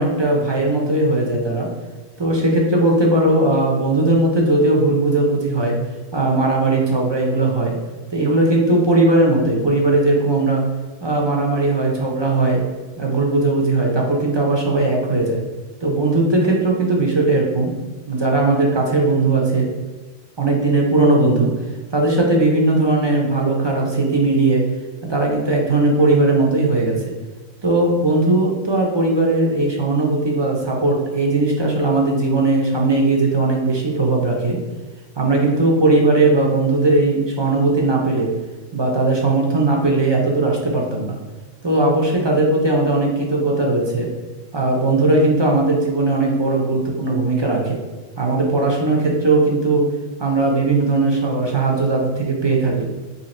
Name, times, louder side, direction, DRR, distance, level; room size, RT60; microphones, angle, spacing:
voice 1, 0.0-1.7 2.2-5.8 6.1-7.8 8.1-10.7 11.0-12.7 13.0-15.4 15.8-17.7 18.1-19.7 20.4-21.5 21.9-24.6 25.1-27.1 27.6-34.6 35.2-38.3 38.7-41.2 41.6-44.1 44.5-47.8 48.2-49.9 50.2-52.8, right 2 dB, 35° right, -1 dB, 0.5 m, -18 dB
2.8 x 2.8 x 4.2 m, 1.3 s
omnidirectional pair, 1.1 m